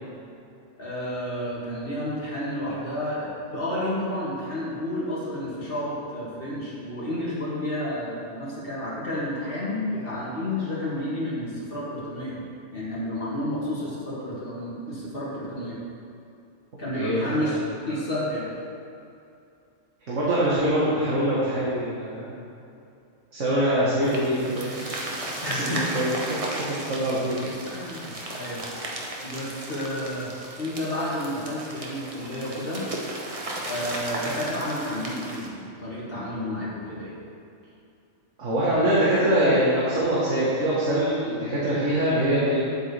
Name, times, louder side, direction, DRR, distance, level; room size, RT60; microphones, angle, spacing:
voice 1, 0.8-12.4 12.7-15.8 16.8-17.6 17.9-18.5 25.4-26.0 27.7-28.6 29.2-30.3 30.6-32.8 33.6-37.1, left 1 dB, 45° left, -8 dB, 2.4 m, -31 dB
voice 2, 17.0-17.5 20.1-22.4 23.3-24.9 25.6-26.4 26.7-27.5 38.4-42.6, right 1 dB, 70° right, -8 dB, 1.7 m, -24 dB
sound 1, 24.0-35.5, right 1 dB, 30° right, 0.9 m, -35 dB
8.6 x 7.9 x 3.3 m, 2.6 s
omnidirectional pair, 1.3 m